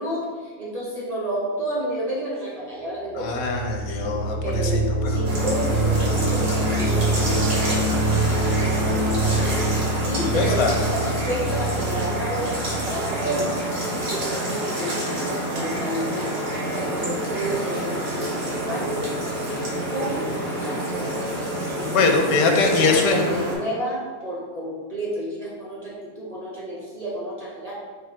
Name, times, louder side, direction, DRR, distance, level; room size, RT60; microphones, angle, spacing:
voice 1, 0.0-3.4 4.4-9.6 10.0-13.6 14.0-16.3 16.7-19.0 19.9-20.3 20.6-21.2 21.8-27.7, right 1 dB, 35° right, -5 dB, 0.7 m, -31 dB
sound 1, 3.1-13.9, right 2 dB, 80° right, 2.2 m, -25 dB
voice 2, 3.2-4.8 5.1-5.2 10.3-10.7 21.8-23.3, left 4 dB, 80° left, 3 dB, 1.1 m, -22 dB
sound 2, 5.2-23.6, right 1 dB, 60° right, 1.5 m, -28 dB
5.1 x 2.6 x 3.6 m, 1.5 s
omnidirectional pair, 1.6 m